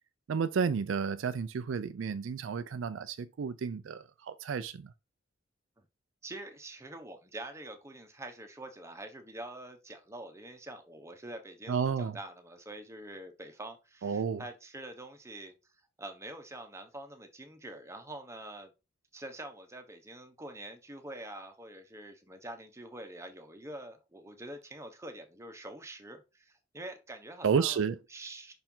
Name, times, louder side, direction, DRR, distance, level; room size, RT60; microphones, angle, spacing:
voice 1, 0.3-4.9 11.7-12.2 14.0-14.4 27.4-28.0, right 6 dB, 70° right, 0.4 m, -31 dB
voice 2, 6.2-15.5 16.0-18.7 19.1-28.5, right 1 dB, 15° right, 1.0 m, -45 dB
5.7 x 4.4 x 3.7 m
head